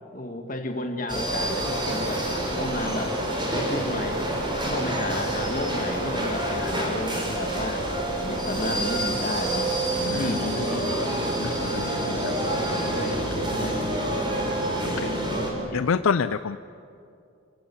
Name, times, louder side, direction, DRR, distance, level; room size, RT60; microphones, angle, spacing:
voice 1, 0.1-2.2 2.6-3.1 3.4-4.3 4.6-7.8 8.2-11.1 11.7-12.4 12.7-13.2 13.6-13.8 14.9-15.3 15.7-15.8, left 1 dB, 40° left, 4 dB, 2.1 m, -32 dB
sound 1, 1.1-15.5, right 1 dB, 25° right, 4.2 m, -27 dB
voice 2, 10.0-10.4 11.4-12.5 14.8-15.1 15.7-16.6, left 6 dB, 90° left, 13 dB, 0.5 m, -28 dB
28.0 x 15.5 x 8.8 m, 2.5 s
head